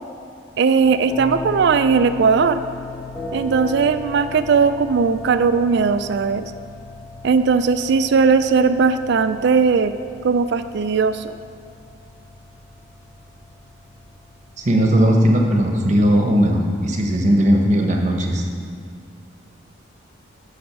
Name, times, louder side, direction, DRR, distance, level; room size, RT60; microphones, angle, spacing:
voice 1, 0.6-2.6 3.3-6.4 7.2-9.9 10.2-11.3, right 5 dB, 55° right, 11 dB, 0.3 m, -18 dB
sound 1, 0.8-17.2, left 2 dB, 5° left, 1.8 m, -37 dB
voice 2, 14.6-18.4, equal, 35° right, 2 dB, 1.0 m, -17 dB
8.4 x 6.4 x 6.0 m, 2.4 s
head